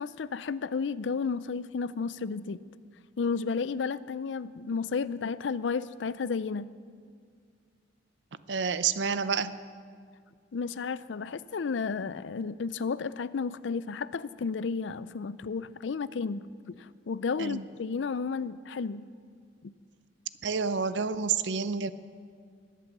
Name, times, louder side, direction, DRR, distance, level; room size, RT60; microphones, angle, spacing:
voice 1, 0.0-2.6 3.2-6.7 10.5-16.5 16.8-19.0 19.6-19.7, left 5 dB, 85° left, 17 dB, 0.5 m, -32 dB
voice 2, 8.5-9.6 17.4-17.6 20.4-21.9, right 5 dB, 75° right, 14 dB, 0.6 m, -29 dB
20.0 x 8.4 x 7.2 m, 2.1 s
head